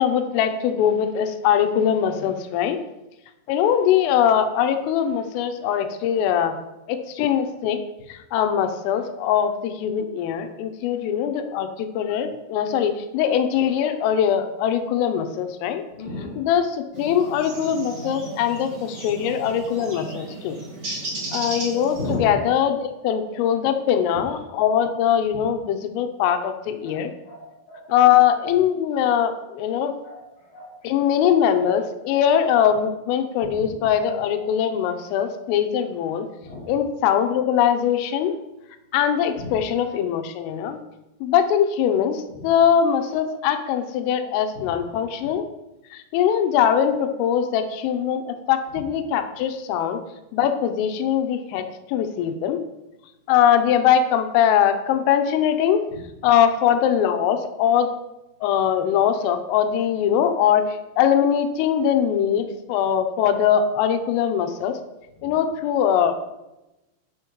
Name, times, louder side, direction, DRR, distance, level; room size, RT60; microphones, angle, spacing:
voice 1, 0.0-2.8 3.5-6.6 6.9-7.8 8.1-15.8 16.4-20.6 21.3-27.1 27.9-29.9 30.9-36.3 36.7-38.3 38.9-40.8 41.2-45.5 45.9-50.0 50.3-52.6 53.3-55.8 56.2-57.9 58.4-64.8 65.2-66.2, left 9 dB, 90° left, 7 dB, 3.3 m, -21 dB
voice 2, 16.0-16.4 21.9-22.4 22.9-23.0 23.3-23.5 26.8-27.9 30.0-30.7 32.0-32.2 33.5-33.7 34.8-34.9 36.4-36.7 39.4-39.6 44.5-44.8 45.2-45.3 56.3-56.4, left 2 dB, 45° left, -6 dB, 3.1 m, -35 dB
sound 1, 16.9-22.1, right 2 dB, 75° right, 0.9 m, -34 dB
10.0 x 9.3 x 3.0 m, 0.98 s
omnidirectional pair, 5.7 m